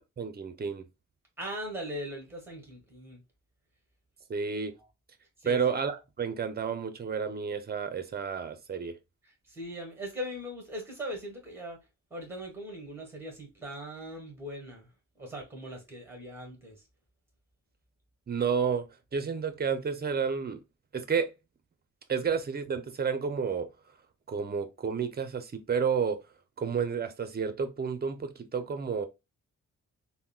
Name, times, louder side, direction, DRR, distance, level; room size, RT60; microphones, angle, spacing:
voice 1, 0.2-0.8 4.3-4.7 5.5-8.9 18.3-18.9 19.1-20.6 20.9-21.3 22.1-23.7 24.3-26.2 26.6-29.1, right 6 dB, 30° right, 0.6 m, -30 dB
voice 2, 1.4-3.2 5.4-5.6 9.2-11.8 12.1-14.9 15.2-16.9, equal, 5° right, 1.5 m, -40 dB
3.6 x 2.1 x 2.2 m
cardioid pair, 95°, 31 cm